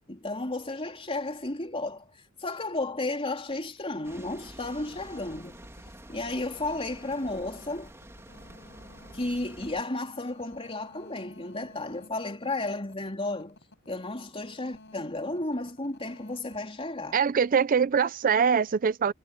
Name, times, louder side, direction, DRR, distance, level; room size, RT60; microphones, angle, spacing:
voice 1, 0.1-2.1 2.4-5.6 6.1-7.9 9.1-13.6 13.9-17.2, left 2 dB, 30° left, 3.5 m, -33 dB
sound 1, 3.8-17.6, left 2 dB, 60° left, 5.7 m, -55 dB
sound 2, 4.0-9.8, right 1 dB, 15° right, 2.5 m, -48 dB
voice 2, 17.1-19.1, right 6 dB, 45° right, 0.4 m, -23 dB
head